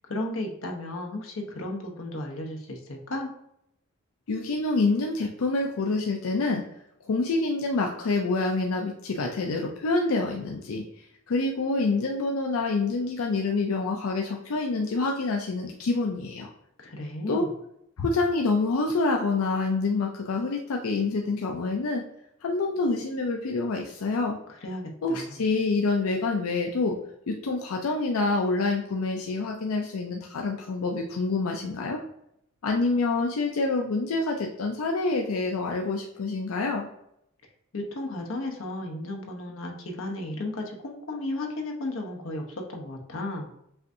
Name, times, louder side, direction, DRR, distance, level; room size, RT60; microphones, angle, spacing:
voice 1, 0.1-3.3 16.8-17.5 24.6-25.4 37.7-43.5, left 1 dB, 70° left, 2 dB, 0.8 m, -34 dB
voice 2, 4.3-6.6 7.1-16.5 17.3-17.5 18.0-22.0 22.4-24.4 25.0-27.0 27.3-32.0 32.6-36.9, left 3 dB, 90° left, 2 dB, 0.5 m, -27 dB
5.6 x 2.6 x 2.6 m, 0.77 s
head